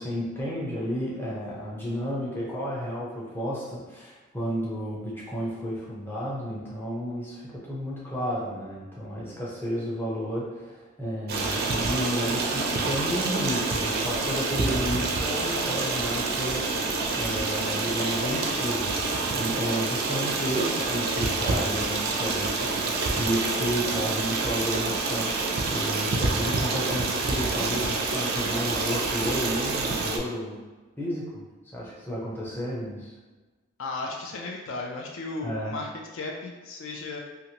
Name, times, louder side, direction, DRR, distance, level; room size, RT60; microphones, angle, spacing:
voice 1, 0.0-16.6 17.1-18.9 19.3-22.7 23.1-25.3 25.7-30.6 31.0-33.1 35.4-35.8, equal, 10° left, -6 dB, 0.6 m, -32 dB
Stream, 11.3-30.2, right 3 dB, 45° right, 0.4 m, -27 dB
voice 2, 33.8-37.2, left 3 dB, 60° left, 0 dB, 0.4 m, -35 dB
2.9 x 2.4 x 2.8 m, 1.2 s
head